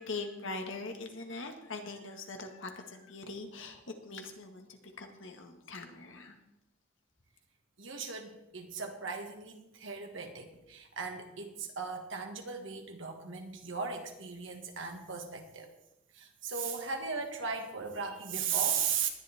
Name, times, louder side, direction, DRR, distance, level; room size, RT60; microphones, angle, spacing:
voice 1, 0.0-6.4, left 3 dB, 65° left, 4 dB, 1.7 m, -42 dB
voice 2, 7.8-15.7 16.1-19.1, right 6 dB, 65° right, 3 dB, 1.9 m, -37 dB
19.5 x 11.0 x 3.6 m, 0.90 s
head